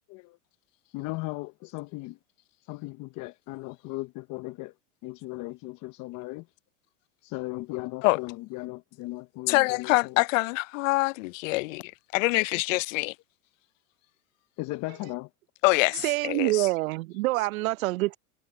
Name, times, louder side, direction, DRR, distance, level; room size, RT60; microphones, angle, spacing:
voice 1, 0.9-2.2 2.7-4.7 5.0-6.5 7.2-10.2 14.6-15.3, left 22 dB, 40° left, 0.9 m, -37 dB
voice 2, 9.5-13.1 15.6-16.7, left 23 dB, 60° left, 0.6 m, -25 dB
voice 3, 16.0-18.2, right 20 dB, 65° right, 0.9 m, -26 dB
hypercardioid pair, 115°, 45 cm